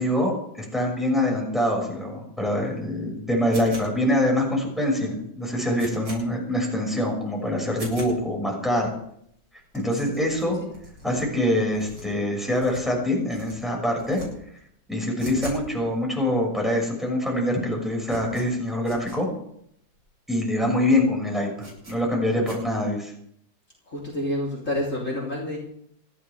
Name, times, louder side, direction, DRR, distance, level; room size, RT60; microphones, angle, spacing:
voice 1, 0.0-8.9 9.7-10.6 11.0-14.2 14.9-19.3 20.3-21.5 21.9-23.1, left 1 dB, ahead, -1 dB, 6.1 m, -24 dB
sound 1, 3.5-4.2 4.7-4.8 5.1-5.2 5.5-6.2 6.7-6.8 7.1-7.2 7.7-8.1 8.7-8.8 8.9-9.0 9.2-9.3 9.6-9.7 10.0-11.2 11.7-13.0 13.3-13.5 13.9-14.3 14.5-15.7 15.9-16.0 16.7-16.8 16.9-17.3 17.6-19.2 19.6-19.7 19.9-20.0 20.5-20.7 20.9-21.0 21.6-22.0 22.4-22.6, equal, 80° right, 8.9 m, -41 dB
voice 2, 23.9-25.6, left 1 dB, 40° left, -3 dB, 3.9 m, -28 dB
28.5 x 12.0 x 3.5 m, 0.72 s
omnidirectional pair, 2.0 m